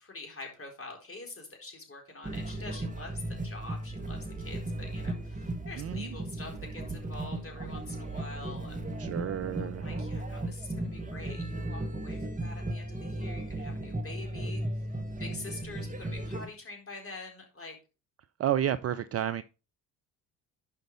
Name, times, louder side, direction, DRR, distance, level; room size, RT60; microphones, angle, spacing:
voice 1, 0.0-9.1 9.6-14.6 15.2-17.8, left 3 dB, 30° left, 4.3 m, -45 dB
sound 1, 2.2-16.5, right 1 dB, 15° right, 1.8 m, -36 dB
voice 2, 5.8-6.2 9.0-10.0 18.4-19.4, right 10 dB, 35° right, 0.5 m, -31 dB
11.5 x 5.2 x 4.0 m
figure-of-eight pair, 50°, 46 cm